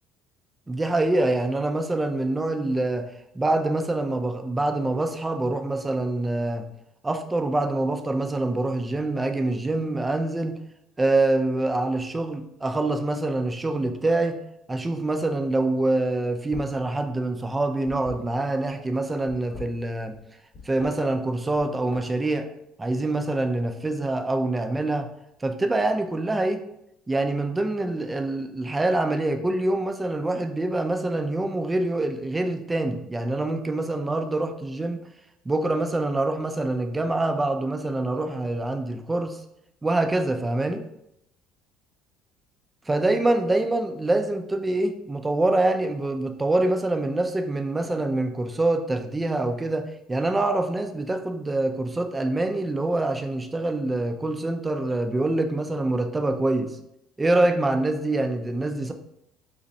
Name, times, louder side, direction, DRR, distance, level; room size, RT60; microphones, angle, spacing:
voice 1, 0.7-3.1 3.3-6.6 7.0-10.6 11.0-14.4 14.7-20.2 20.6-22.5 22.8-25.1 25.4-26.6 27.1-35.0 35.5-39.4 39.8-40.8 42.9-56.8 57.2-58.9, right 2 dB, 15° right, 7 dB, 0.4 m, -25 dB
sound 1, 16.5-16.8 17.1-18.7 19.2-20.2 20.5-20.9 21.4-22.3, left 4 dB, 55° left, 1.5 m, -42 dB
5.3 x 2.1 x 4.0 m, 0.79 s
cardioid pair, 120°, 0 cm